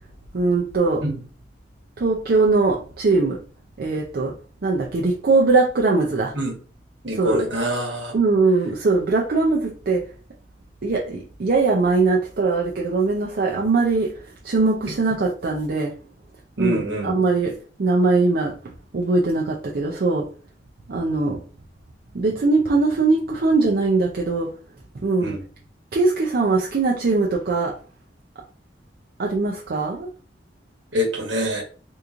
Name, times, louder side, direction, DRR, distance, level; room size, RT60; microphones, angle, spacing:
voice 1, 0.3-1.0 2.0-3.4 3.8-4.3 4.6-6.4 7.1-7.4 8.1-10.1 10.8-15.9 16.6-18.6 18.9-20.3 20.9-21.4 22.1-24.5 25.0-25.4 25.9-27.8 29.2-30.1, right 3 dB, 55° right, 0.5 m, -21 dB
voice 2, 7.0-8.1 16.6-17.1 25.2-25.4 30.9-31.6, equal, 75° right, 1.2 m, -25 dB
3.6 x 3.0 x 2.4 m
head